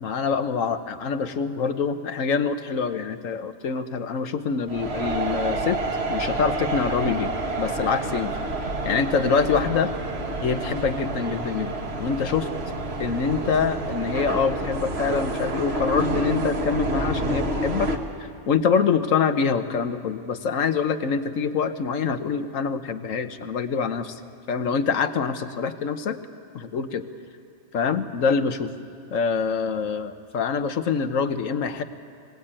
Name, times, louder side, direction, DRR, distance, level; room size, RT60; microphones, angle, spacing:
voice 1, 0.0-5.8 6.1-7.3 7.6-8.4 8.8-9.9 10.4-12.5 13.0-17.9 18.2-24.2 24.5-26.2 26.5-27.1 27.7-28.7 29.1-31.8, left 5 dB, 90° left, 10 dB, 1.4 m, -25 dB
sound 1, 4.7-18.0, right 2 dB, 55° right, 1.8 m, -28 dB
24.5 x 17.5 x 8.9 m, 2.3 s
omnidirectional pair, 1.3 m